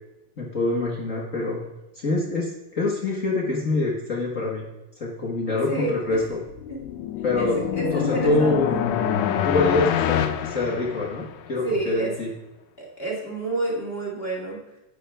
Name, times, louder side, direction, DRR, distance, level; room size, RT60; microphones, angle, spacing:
voice 1, 0.4-1.6 1.9-4.7 5.0-6.4 7.2-7.6 7.9-8.8 9.4-12.3, left 2 dB, 60° left, -3 dB, 0.8 m, -25 dB
voice 2, 5.7-6.2 6.7-6.8 7.4-8.8 11.6-12.1 12.8-14.6, right 2 dB, 20° left, -3 dB, 1.9 m, -29 dB
sound 1, 6.5-11.5, left 10 dB, 80° left, 2.1 m, -26 dB
10.5 x 9.2 x 3.4 m, 0.97 s
omnidirectional pair, 3.9 m